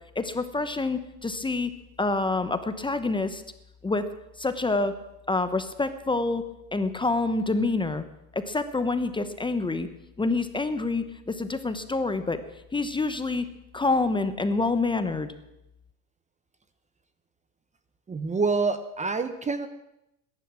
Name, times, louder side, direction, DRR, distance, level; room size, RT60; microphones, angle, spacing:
voice 1, 0.2-1.7 2.0-3.4 3.8-4.0 4.4-5.0 5.3-6.4 6.7-8.0 8.3-9.9 10.2-12.4 12.7-13.5 13.7-15.3, left 3 dB, 10° left, 10 dB, 0.9 m, -27 dB
voice 2, 18.1-19.7, right 4 dB, 15° right, 11 dB, 0.8 m, -27 dB
20.0 x 10.5 x 6.2 m, 0.87 s
supercardioid pair, 120°, 43 cm